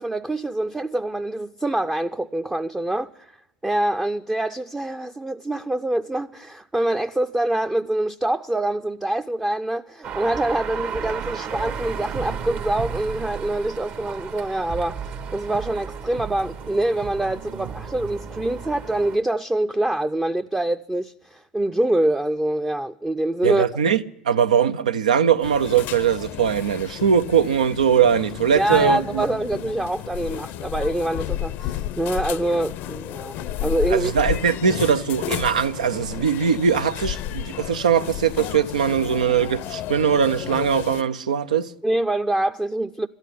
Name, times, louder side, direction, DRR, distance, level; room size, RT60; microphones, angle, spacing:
voice 1, 0.0-3.4 3.6-15.0 15.3-23.7 28.5-34.1 41.8-43.1, right 1 dB, 10° right, 0.5 m, -25 dB
sound 1, 10.0-19.2, right 7 dB, 50° right, 1.2 m, -33 dB
voice 2, 23.4-24.0 24.3-29.3 33.9-41.7, right 7 dB, 85° right, 0.6 m, -21 dB
sound 2, 25.4-41.0, left 12 dB, 55° left, 0.6 m, -32 dB
13.5 x 10.5 x 9.9 m
hypercardioid pair, 80°, 4 cm